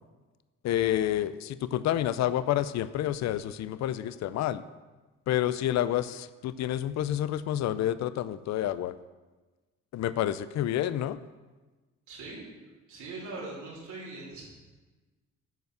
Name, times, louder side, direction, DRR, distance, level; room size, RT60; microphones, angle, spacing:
voice 1, 0.6-4.6 5.3-8.9 9.9-11.2, left 12 dB, 65° left, 15 dB, 0.5 m, -29 dB
voice 2, 12.1-12.5 12.9-14.4, right 3 dB, 80° right, -5 dB, 3.6 m, -41 dB
9.1 x 5.5 x 6.6 m, 1.2 s
cardioid pair, 90°, 30 cm